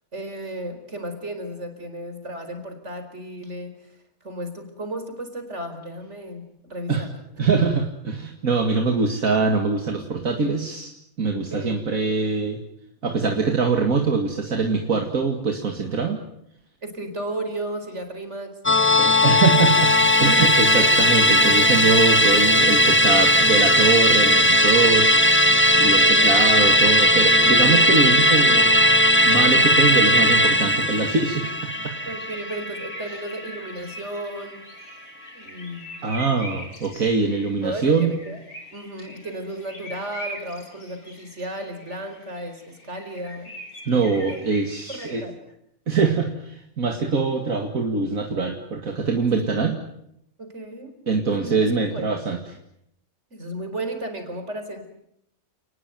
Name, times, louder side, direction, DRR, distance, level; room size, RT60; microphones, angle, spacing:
voice 1, 0.1-7.2 11.3-11.9 16.8-18.6 25.7-26.4 32.0-34.8 35.3-35.9 37.6-38.4 38.7-43.6 43.9-44.4 44.9-45.3 49.2-49.5 50.4-50.9 51.3-51.5 51.9-52.1 53.3-54.9, right 1 dB, 50° right, 7 dB, 4.9 m, -34 dB
voice 2, 7.4-10.9 11.2-12.6 13.0-16.2 19.0-25.1 25.7-28.8 29.2-31.5 31.8-31.9 36.0-38.1 43.9-45.2 45.9-49.8 51.1-52.4, right 4 dB, 70° right, 3 dB, 2.6 m, -23 dB
Musical instrument, 18.7-33.3 33.7-33.8, left 1 dB, 10° left, 0.9 m, -17 dB
sound 1, 30.3-45.2, equal, 85° left, 5.3 m, -42 dB
30.0 x 19.5 x 9.4 m, 0.77 s
omnidirectional pair, 1.5 m